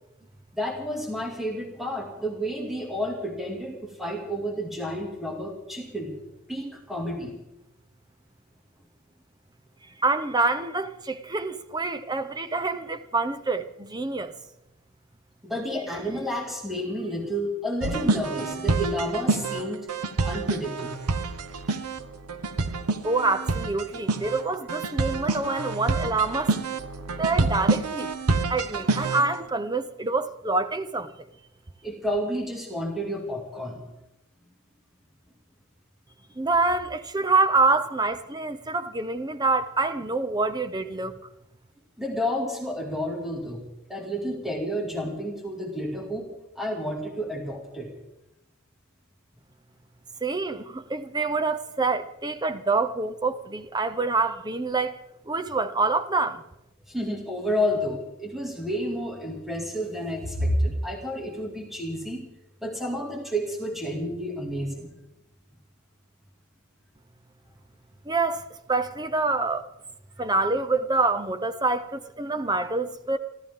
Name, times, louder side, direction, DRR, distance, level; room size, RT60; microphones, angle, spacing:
voice 1, 0.5-6.2 6.5-7.3 15.4-19.8 20.2-21.0 31.8-33.8 42.0-43.6 43.9-46.3 46.6-47.9 56.9-62.3 62.6-64.9, equal, ahead, 2.3 m, -30 dB
voice 2, 10.0-14.3 23.0-26.5 27.2-28.1 28.5-31.1 36.4-41.1 50.2-54.9 55.3-56.4 68.1-69.7 70.2-73.2, right 3 dB, 20° right, 0.7 m, -26 dB
sound 1, 17.8-29.3, right 3 dB, 90° right, 1.0 m, -27 dB
29.0 x 13.0 x 3.7 m
head